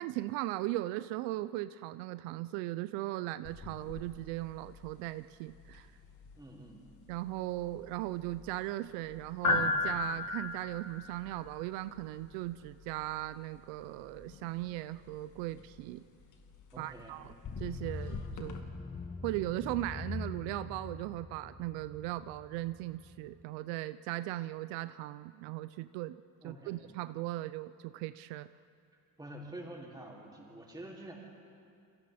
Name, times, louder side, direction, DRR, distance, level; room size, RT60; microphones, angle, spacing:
voice 1, 0.0-5.9 7.1-16.0 16.8-17.3 17.6-18.6 19.2-26.2 26.4-28.5, right 16 dB, 85° right, 14 dB, 0.6 m, -38 dB
sound 1, 3.5-18.6, left 3 dB, 45° left, 2.2 m, -40 dB
voice 2, 6.4-6.8 16.7-17.2 26.4-26.8 29.2-31.1, right 1 dB, 10° right, -5 dB, 5.6 m, -47 dB
sound 2, 17.4-23.4, left 4 dB, 20° left, 0.9 m, -44 dB
30.0 x 23.0 x 4.3 m, 2.4 s
cardioid pair, 105°, 42 cm